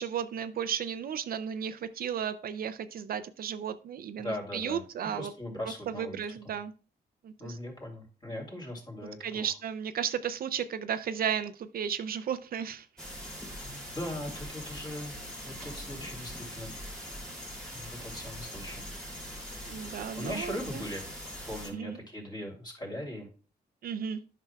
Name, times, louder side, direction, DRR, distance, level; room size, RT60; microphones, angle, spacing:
voice 1, 0.0-5.3 5.9-6.7 7.2-7.6 9.2-12.9 19.6-20.8 21.7-22.0 23.8-24.2, right 8 dB, 60° right, 12 dB, 0.4 m, -34 dB
voice 2, 4.2-4.8 5.1-6.5 7.4-9.5 13.6-16.9 17.7-18.8 20.2-21.0 21.4-23.3, left 1 dB, 25° left, 0 dB, 2.7 m, -39 dB
sound 1, 13.0-21.7, equal, 5° left, 2.4 m, -42 dB
11.5 x 5.9 x 2.2 m, 0.37 s
wide cardioid pair, 155°, 17 cm